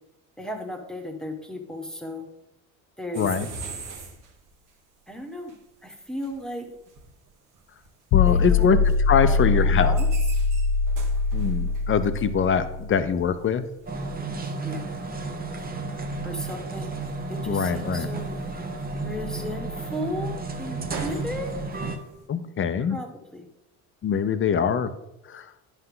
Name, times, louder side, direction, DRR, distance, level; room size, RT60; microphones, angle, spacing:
voice 1, 0.4-2.2 3.0-3.3 5.1-5.5 5.8-6.7 8.3-8.7 9.2-10.1 14.6-14.8 16.2-16.9 17.3-18.4 19.0-21.5 22.8-23.5, left 1 dB, ahead, 3 dB, 1.5 m, -35 dB
voice 2, 3.1-3.5 8.1-8.8 9.1-10.0 11.3-13.6 16.1-16.2 17.5-18.1 22.3-23.0 24.0-24.9 25.3-25.4, left 7 dB, 35° left, 11 dB, 0.7 m, -23 dB
sound 1, 3.1-4.8 5.5-5.6 6.0-6.4 6.7-7.9 8.5-8.6 8.8-9.0 9.7-11.9 13.4-13.5 13.8-15.0 15.5-22.3, right 4 dB, 55° right, 1.5 m, -43 dB
sound 2, 8.1-13.1, left 4 dB, 65° left, 0.5 m, -22 dB
sound 3, 13.9-22.0, right 3 dB, 25° right, 1.0 m, -32 dB
10.0 x 5.8 x 3.9 m, 0.85 s
supercardioid pair, 90°, 37 cm